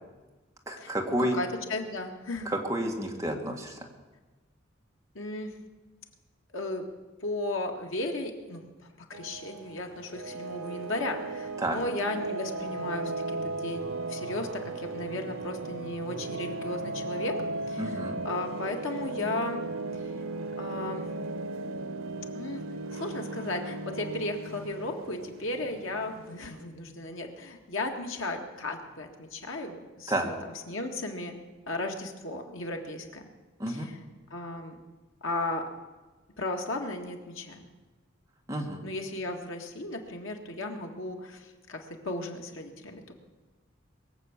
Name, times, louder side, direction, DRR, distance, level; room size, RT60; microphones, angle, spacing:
voice 1, 0.7-1.4 2.4-3.8 11.6-11.8 17.8-18.2 30.1-30.3 33.6-33.9 38.5-38.8, right 1 dB, 15° right, 1 dB, 1.7 m, -30 dB
voice 2, 1.3-2.5 5.2-5.5 6.5-6.9 7.2-17.4 17.7-18.0 18.2-19.6 20.0-20.1 20.6-21.1 22.3-22.6 22.9-30.3 30.7-31.4 31.7-33.2 33.7-34.0 34.3-34.8 35.2-35.7 36.4-37.7 38.8-43.1, left 2 dB, 80° left, 3 dB, 1.8 m, -35 dB
sound 1, 9.1-26.6, right 2 dB, 90° right, 0.9 m, -36 dB
22.0 x 7.8 x 7.2 m, 1.2 s
head